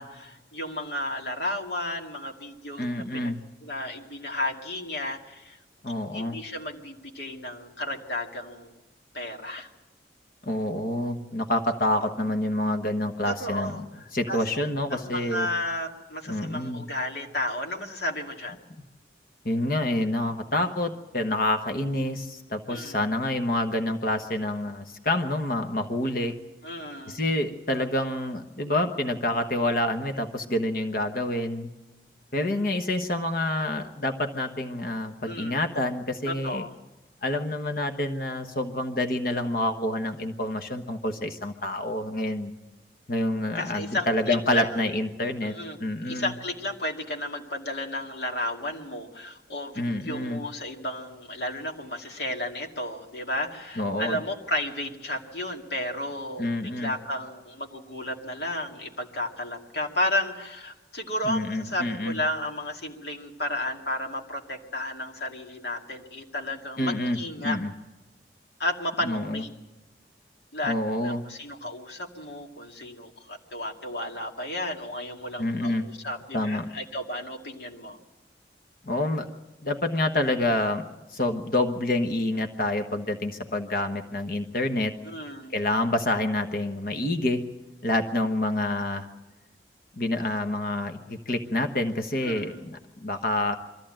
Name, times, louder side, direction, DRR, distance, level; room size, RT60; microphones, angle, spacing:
voice 1, 0.0-3.3 3.6-5.6 6.1-8.7 9.1-9.7 13.2-14.4 14.9-18.6 22.7-23.0 26.6-27.2 35.3-35.6 36.3-36.7 43.5-44.8 45.4-45.8 46.1-67.6 68.6-69.5 70.5-70.7 71.0-78.0 85.0-85.5 92.2-92.7, left 1 dB, 75° left, 1 dB, 2.4 m, -33 dB
voice 2, 2.8-3.4 5.8-6.4 10.4-13.8 14.1-15.5 16.3-16.9 19.4-26.3 27.1-31.7 32.3-36.6 37.2-42.5 43.1-45.5 45.8-46.3 49.8-50.4 53.8-54.2 56.4-56.9 61.2-62.2 66.8-67.7 69.0-69.4 70.6-71.3 75.4-75.9 76.3-76.7 78.8-79.3 79.6-80.8 81.1-84.9 85.5-87.4 87.8-89.1 90.0-93.5, left 1 dB, 50° left, 6 dB, 1.2 m, -27 dB
23.0 x 14.5 x 8.9 m, 1.1 s
head